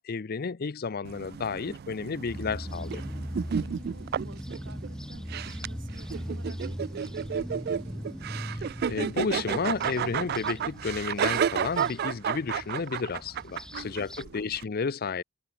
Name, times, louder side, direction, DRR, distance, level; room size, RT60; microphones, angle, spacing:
voice 1, 0.0-3.0 8.5-15.2, left 5 dB, 50° left, 0.6 m, -32 dB
sound 1, 1.0-14.6, right 7 dB, 55° right, 0.3 m, -32 dB
sound 2, 2.3-14.2, equal, 5° left, 2.9 m, -40 dB
voice 2, 3.6-8.1 13.7-14.5, right 2 dB, 70° right, 4.4 m, -52 dB
head